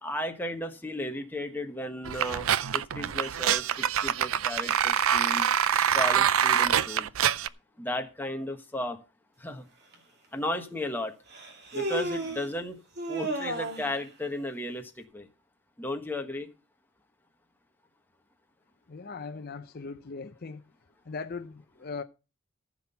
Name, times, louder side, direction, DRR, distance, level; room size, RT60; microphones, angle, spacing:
voice 1, 0.0-7.1 7.8-9.0 9.4-9.7 10.3-11.1 11.7-12.8 13.1-15.3 15.8-16.5, left 1 dB, 10° left, 1.2 m, -35 dB
sound 1, 2.1-7.5, right 9 dB, 75° right, 0.5 m, -25 dB
Human voice, 9.9-10.0 11.3-12.5 13.0-14.0, right 1 dB, 50° right, 2.6 m, -33 dB
voice 2, 18.9-20.6 21.1-22.0, left 4 dB, 45° left, 0.6 m, -39 dB
15.0 x 6.0 x 5.6 m
head